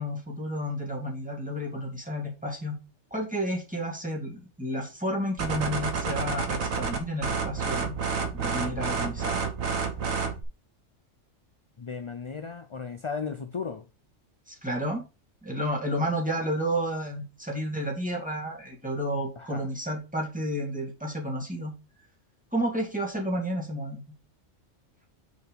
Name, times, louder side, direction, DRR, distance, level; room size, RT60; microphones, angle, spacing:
voice 1, 0.0-2.8 3.1-8.0 8.3-9.4 14.5-15.0 15.4-21.7 22.5-24.0, equal, 5° right, 2.3 m, -31 dB
sound 1, 5.4-10.4, right 5 dB, 90° right, 1.6 m, -29 dB
voice 2, 11.8-13.8 19.4-19.7, left 5 dB, 40° left, 0.4 m, -35 dB
6.4 x 4.7 x 5.2 m
omnidirectional pair, 1.4 m